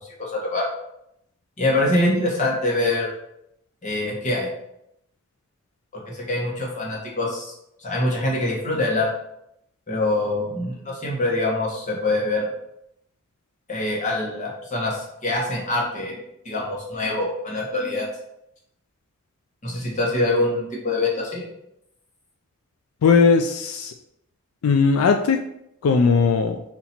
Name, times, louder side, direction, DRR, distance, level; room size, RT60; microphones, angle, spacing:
voice 1, 0.2-0.7 1.6-3.1 3.8-4.5 5.9-7.5 7.8-9.1 9.9-12.5 13.7-16.2 16.4-18.1 19.6-21.5, left 2 dB, 35° left, -3 dB, 1.3 m, -24 dB
voice 2, 23.0-23.9 24.6-25.4 25.8-26.6, left 5 dB, 85° left, 6 dB, 0.4 m, -18 dB
4.2 x 2.9 x 4.2 m, 0.77 s
head